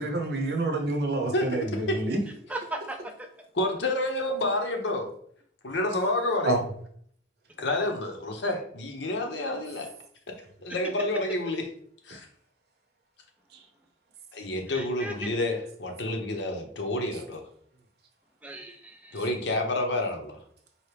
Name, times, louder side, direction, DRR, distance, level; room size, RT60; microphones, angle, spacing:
voice 1, 0.0-2.2 6.4-6.6, right 2 dB, 60° right, 0.7 m, -27 dB
voice 2, 2.5-3.3 14.7-15.3 18.4-19.2, right 2 dB, 10° right, 0.4 m, -37 dB
voice 3, 3.6-5.1 5.6-6.6 7.6-9.9 10.6-11.6 12.1-12.3 14.3-17.4 19.1-20.4, left 1 dB, 80° left, 0.8 m, -29 dB
4.5 x 2.8 x 3.3 m
head